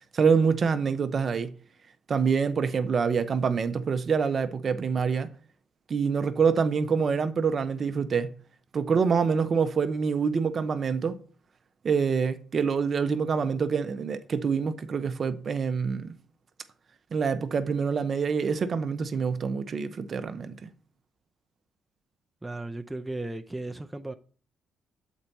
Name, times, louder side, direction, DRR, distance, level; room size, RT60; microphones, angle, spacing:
voice 1, 0.1-1.5 2.1-5.3 5.9-8.3 8.7-11.2 11.8-16.1 17.1-20.7, right 5 dB, 45° right, 0.6 m, -26 dB
voice 2, 22.4-24.1, right 2 dB, 10° right, 0.5 m, -35 dB
7.3 x 4.5 x 4.0 m
cardioid pair, 90°, 0 cm